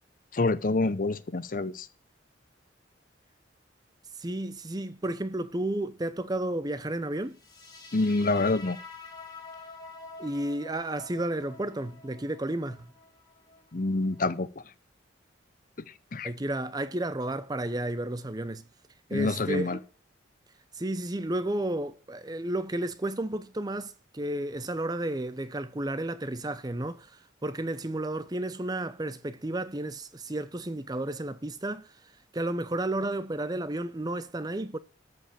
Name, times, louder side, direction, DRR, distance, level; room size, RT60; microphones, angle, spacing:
voice 1, 0.3-1.9 7.9-8.8 13.7-14.5 15.9-16.3 19.1-19.8, left 2 dB, 45° left, 0.7 m, -27 dB
voice 2, 4.2-7.4 10.2-12.9 16.2-18.6 19.1-19.8 20.7-31.9 32.3-34.8, right 1 dB, 20° right, 0.6 m, -32 dB
sound 1, 7.3-14.4, left 3 dB, 20° left, 1.8 m, -48 dB
13.5 x 5.0 x 7.4 m
head